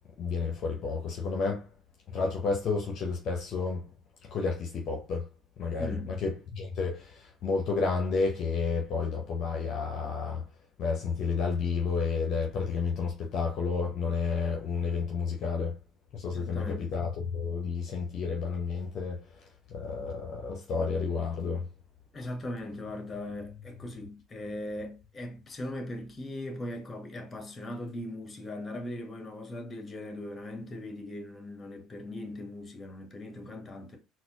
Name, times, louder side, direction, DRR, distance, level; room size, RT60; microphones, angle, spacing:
voice 1, 0.2-1.7 2.1-3.9 4.3-5.3 5.6-10.4 10.8-15.8 16.1-19.2 19.7-21.7, left 5 dB, 50° left, 0.7 m, -31 dB
voice 2, 5.8-6.1 16.3-16.9 22.1-34.0, left 1 dB, 25° left, 1.1 m, -39 dB
4.0 x 2.1 x 2.8 m
figure-of-eight pair, 60°, 0 cm